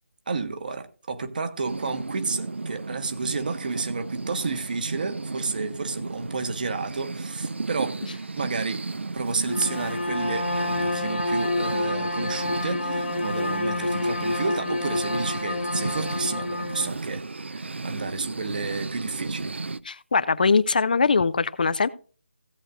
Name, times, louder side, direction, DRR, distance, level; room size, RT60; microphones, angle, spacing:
voice 1, 0.3-8.0 8.4-8.8 9.1-17.2 17.5-19.6, right 4 dB, 45° right, 1.2 m, -31 dB
sound 1, 1.6-19.8, right 3 dB, 65° right, 0.5 m, -34 dB
Bowed string instrument, 9.4-17.0, left 2 dB, 65° left, 1.3 m, -28 dB
voice 2, 19.9-21.9, left 4 dB, 45° left, 0.5 m, -21 dB
17.0 x 7.7 x 2.4 m
figure-of-eight pair, 155°, 7 cm